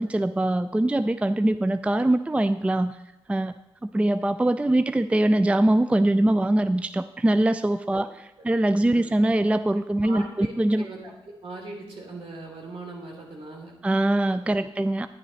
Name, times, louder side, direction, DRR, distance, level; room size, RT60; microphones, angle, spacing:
voice 1, 0.0-3.0 3.3-3.5 3.8-8.1 8.4-10.8 13.8-15.1, right 1 dB, 10° right, 13 dB, 0.3 m, -22 dB
voice 2, 10.0-10.5 10.7-13.7, right 2 dB, 65° right, -2 dB, 3.2 m, -40 dB
10.5 x 10.0 x 3.2 m, 0.97 s
supercardioid pair, 45°, 11 cm